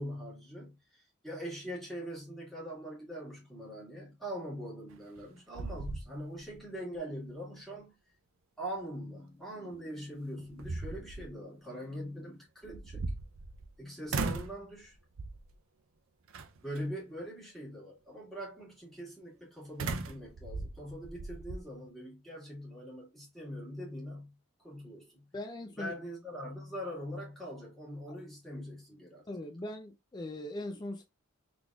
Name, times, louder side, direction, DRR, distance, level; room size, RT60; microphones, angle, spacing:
voice 1, 0.0-7.9 8.6-13.1 13.8-15.0 16.6-25.3 25.8-29.3, equal, ahead, 2.0 m, -42 dB
sound 1, 4.9-5.3 5.6-6.6 6.9-7.0 9.7-9.8 10.4-11.3 12.6-13.7 14.1-14.6 15.2-15.5 16.3-16.8 19.8-21.6, right 3 dB, 70° right, 0.5 m, -37 dB
voice 2, 25.3-25.9 28.1-28.2 29.3-31.0, left 1 dB, 20° left, 0.4 m, -40 dB
3.9 x 3.4 x 2.3 m
head